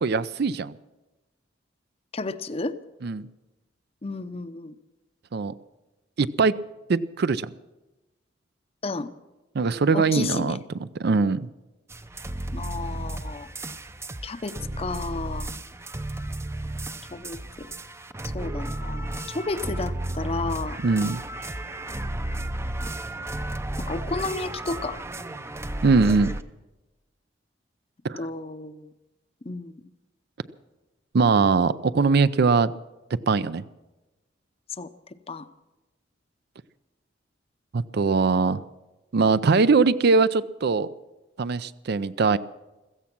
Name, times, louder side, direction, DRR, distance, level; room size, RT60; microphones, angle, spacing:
voice 1, 0.0-0.7 3.0-3.3 5.3-5.5 6.2-6.5 6.9-7.5 9.5-10.6 11.0-11.4 20.8-21.2 25.8-26.3 28.0-28.2 31.1-32.7 33.3-33.6 37.7-38.6 39.1-40.9 41.4-42.4, right 4 dB, 60° right, 15 dB, 0.5 m, -21 dB
voice 2, 2.1-2.8 4.0-4.7 8.8-9.1 9.9-10.6 12.5-13.5 14.2-15.5 17.1-17.7 18.3-20.8 23.9-25.0 28.2-28.9 29.5-29.8 34.8-34.9 35.3-35.5, left 3 dB, 35° left, 12 dB, 0.7 m, -32 dB
sound 1, 11.9-26.4, right 1 dB, 15° right, 0.6 m, -33 dB
15.5 x 14.5 x 6.0 m, 1.1 s
head